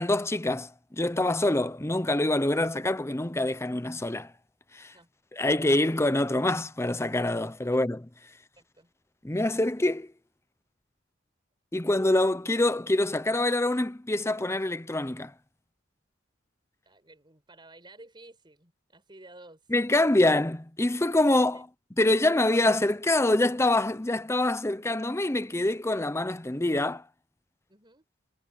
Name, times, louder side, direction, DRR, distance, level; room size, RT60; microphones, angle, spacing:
voice 1, 0.0-4.3 4.7-4.9 5.3-8.0 9.2-10.1 11.7-15.3 19.7-21.7 22.0-27.0, left 1 dB, 15° left, 0.7 m, -25 dB
voice 2, 8.6-8.9 16.8-19.6 21.5-21.6 27.7-28.1, right 2 dB, 25° right, 6.1 m, -52 dB
head